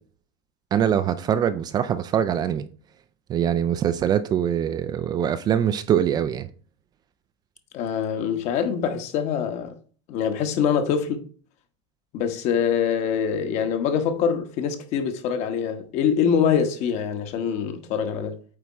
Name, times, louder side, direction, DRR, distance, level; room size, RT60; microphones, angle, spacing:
voice 1, 0.7-2.7 3.3-6.5, right 9 dB, 25° right, 0.4 m, -23 dB
voice 2, 7.7-9.8 10.1-11.2 12.1-18.4, left 7 dB, 45° left, 1.2 m, -24 dB
8.6 x 3.5 x 4.2 m
supercardioid pair, 140°, 16 cm